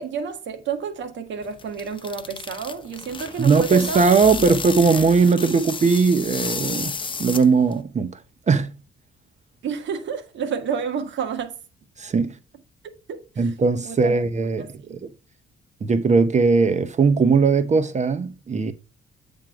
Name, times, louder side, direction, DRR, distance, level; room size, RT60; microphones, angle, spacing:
voice 1, 0.0-4.0 4.5-4.6 9.6-11.6 13.1-13.5 13.8-14.1 14.6-15.0, right 7 dB, 70° right, 1.5 m, -30 dB
sound 1, 1.4-7.8, left 5 dB, 25° left, 0.6 m, -32 dB
voice 2, 3.4-8.2 8.5-8.7 12.0-12.3 13.4-15.1 15.8-18.7, right 4 dB, 35° right, 0.7 m, -19 dB
8.8 x 3.6 x 4.7 m
cardioid pair, 90°, 20 cm